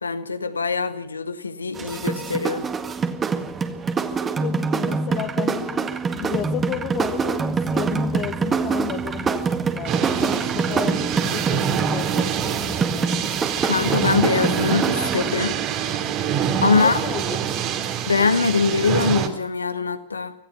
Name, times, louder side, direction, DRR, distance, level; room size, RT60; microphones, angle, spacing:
voice 1, 0.0-2.6 13.6-15.6 16.6-17.0 18.1-20.3, left 4 dB, 75° left, 11 dB, 1.5 m, -22 dB
sound 1, 1.7-15.3, right 5 dB, 20° right, 1.8 m, -25 dB
voice 2, 4.4-13.2 16.7-17.4, left 12 dB, 35° left, 7 dB, 1.1 m, -33 dB
sound 2, 9.9-19.3, right 8 dB, 40° right, 2.7 m, -25 dB
25.5 x 17.5 x 5.9 m, 0.67 s
figure-of-eight pair, 90°, 0 cm